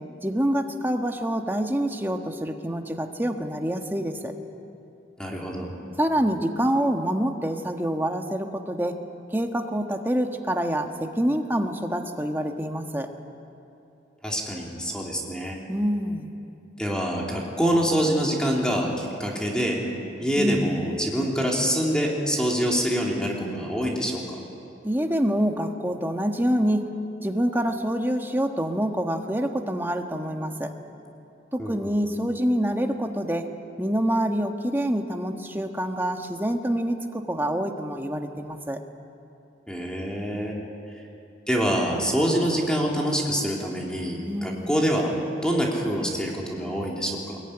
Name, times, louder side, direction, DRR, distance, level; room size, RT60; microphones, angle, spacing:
voice 1, 0.2-4.3 6.0-9.0 9.3-13.1 15.7-16.4 20.4-20.8 24.8-26.9 27.2-30.7 31.5-33.5 33.8-38.8 44.3-44.8, equal, 10° right, 4 dB, 1.5 m, -26 dB
voice 2, 5.2-5.7 14.2-15.6 16.8-19.8 20.2-24.4 31.6-32.0 39.7-40.5 41.5-45.2 45.4-47.4, equal, 5° left, -2 dB, 3.2 m, -25 dB
22.5 x 22.0 x 10.0 m, 2.7 s
head